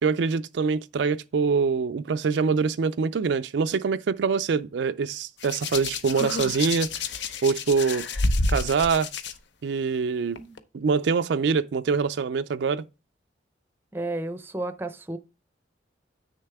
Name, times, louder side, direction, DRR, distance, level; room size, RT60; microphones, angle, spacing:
voice 1, 0.0-6.9 7.4-8.1 8.5-9.1 9.6-10.4 10.7-12.9, right 5 dB, 70° right, 0.4 m, -24 dB
Hands, 5.4-9.3 10.4-10.6, left 3 dB, 70° left, 0.7 m, -29 dB
voice 2, 13.9-15.2, right 2 dB, 10° right, 0.5 m, -32 dB
8.7 x 6.5 x 3.5 m
head